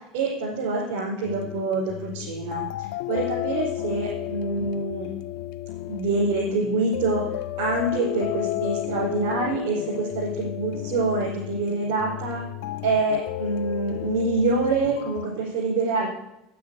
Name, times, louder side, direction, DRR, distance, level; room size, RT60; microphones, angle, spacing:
voice 1, 0.1-5.1 5.9-7.2 7.6-12.4 12.8-16.1, right 3 dB, 80° right, -5 dB, 5.0 m, -26 dB
sound 1, 1.2-15.2, left 15 dB, 80° left, 0.3 m, -33 dB
9.3 x 9.3 x 8.4 m, 0.90 s
supercardioid pair, 110°, 0 cm